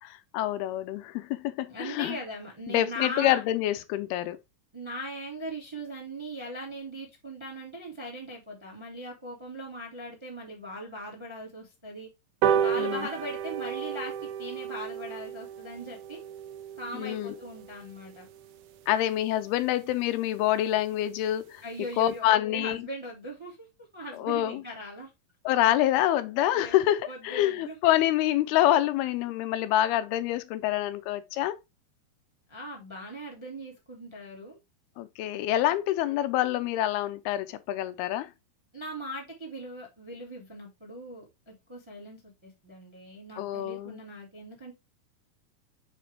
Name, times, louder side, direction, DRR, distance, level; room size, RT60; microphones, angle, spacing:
voice 1, 0.0-2.2 2.7-4.4 12.8-13.1 16.9-17.4 18.9-21.6 22.0-22.9 24.2-24.6 25.5-31.6 35.0-38.3 43.4-44.0, left 13 dB, 85° left, 2.6 m, -26 dB
voice 2, 1.7-3.4 4.7-12.1 12.6-16.2 16.8-18.3 21.6-23.7 23.9-25.1 26.5-26.8 27.1-27.7 32.5-34.6 38.7-44.7, equal, 10° right, 1.6 m, -40 dB
sound 1, 12.4-19.2 19.6-19.7 20.0-20.1 20.4-20.5 20.8-20.9 21.2-21.4 21.9-22.0, right 9 dB, 85° right, 1.7 m, -32 dB
6.4 x 5.0 x 3.4 m
omnidirectional pair, 4.5 m